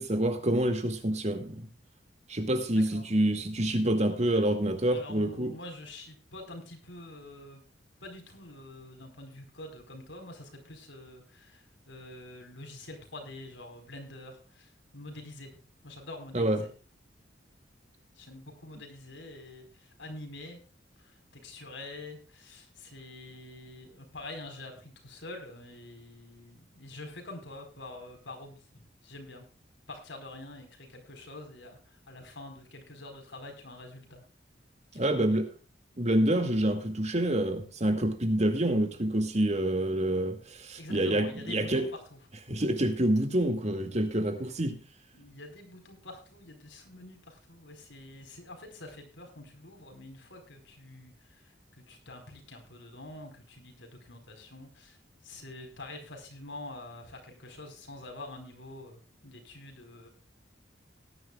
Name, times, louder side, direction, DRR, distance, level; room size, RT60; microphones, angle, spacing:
voice 1, 0.0-1.7 2.3-5.5 16.3-16.6 34.9-35.5 36.0-41.8 42.5-44.8, right 1 dB, 35° right, 2.2 m, -27 dB
voice 2, 2.7-3.1 4.9-7.6 8.0-16.7 18.1-20.6 21.0-29.5 29.9-34.3 34.9-35.4 40.8-42.2 45.1-60.1, left 2 dB, 70° left, 4.6 m, -46 dB
19.0 x 11.5 x 2.4 m
head